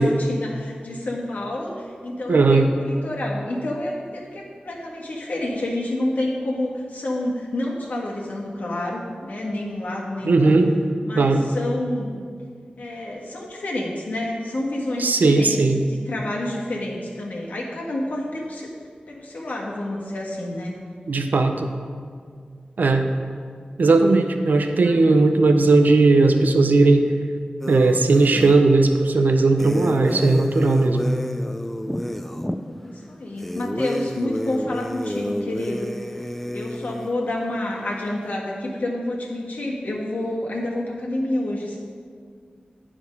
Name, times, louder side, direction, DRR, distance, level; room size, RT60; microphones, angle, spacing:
voice 1, 0.0-10.5 11.0-12.1 12.8-15.6 15.9-18.7 19.1-20.8 24.8-25.0 32.6-36.0 36.5-41.8, left 1 dB, 75° left, -3 dB, 1.6 m, -29 dB
voice 2, 2.3-2.7 10.2-10.7 11.2-11.4 15.0-15.8 21.1-21.7 22.8-23.1 23.8-27.1 27.7-31.1, right 3 dB, 80° right, 6 dB, 0.6 m, -17 dB
sound 1, 27.6-28.6 29.6-32.6 33.4-37.1, equal, 5° left, 0.4 m, -29 dB
9.8 x 4.9 x 5.2 m, 2.1 s
wide cardioid pair, 75°, 3 cm